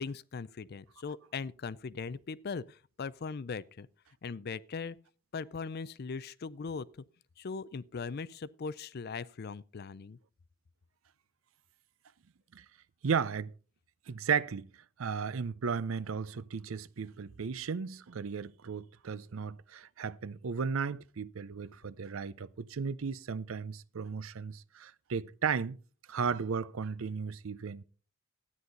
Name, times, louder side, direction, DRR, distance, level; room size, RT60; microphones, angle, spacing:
voice 1, 0.0-3.9 4.2-5.0 5.3-7.0 7.4-10.2, left 5 dB, 50° left, 0.5 m, -39 dB
voice 2, 13.0-13.5 14.1-14.7 15.0-25.8 26.1-27.8, right 6 dB, 75° right, 0.5 m, -35 dB
12.5 x 9.6 x 3.9 m
head